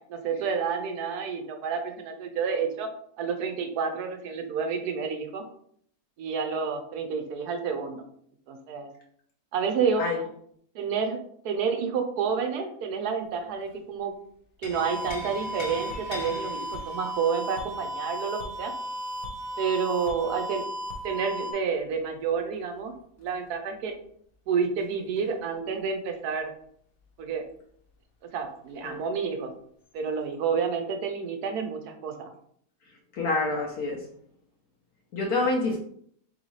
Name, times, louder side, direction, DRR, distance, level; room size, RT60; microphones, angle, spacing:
voice 1, 0.1-2.9 3.2-5.4 6.2-8.0 8.5-8.9 9.5-10.0 10.7-11.2 11.4-14.1 14.6-18.7 19.6-20.6 21.0-22.9 23.2-23.9 24.5-26.5 27.2-27.5 28.3-29.5 29.9-32.3 35.6-35.8, right 6 dB, 85° right, 5 dB, 1.2 m, -29 dB
sound 1, 13.2-14.0 14.3-19.9 21.8-27.5 27.8-27.9 28.3-29.0 29.8-30.0, left 3 dB, 50° left, 0.7 m, -46 dB
sound 2, 14.7-21.5, equal, 65° right, 1.3 m, -35 dB
voice 2, 33.1-34.1 35.1-35.8, left 2 dB, 70° left, -1 dB, 1.2 m, -27 dB
4.0 x 3.5 x 3.1 m, 0.65 s
omnidirectional pair, 1.6 m